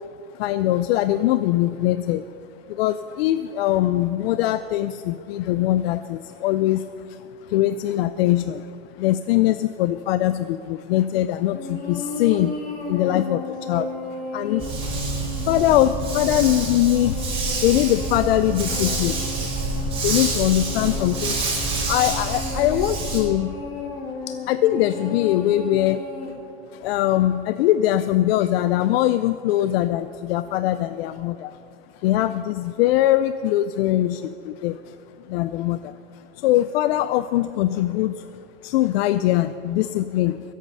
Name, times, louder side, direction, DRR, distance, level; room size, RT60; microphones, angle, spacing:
voice 1, 0.3-2.2 2.7-7.2 7.5-8.7 9.0-14.7 15.5-17.3 17.6-19.2 19.5-19.6 20.0-21.5 21.9-23.6 24.3-26.0 26.7-31.6 32.0-34.9 35.3-35.9 36.4-38.3 38.6-40.4, left 14 dB, 85° left, 12 dB, 0.5 m, -22 dB
sound 1, 11.5-26.3, left 3 dB, 30° left, 3.1 m, -34 dB
Dog, 14.6-23.2, right 3 dB, 20° right, 3.1 m, -27 dB
21.5 x 8.5 x 5.5 m, 2.6 s
supercardioid pair, 170°, 30 cm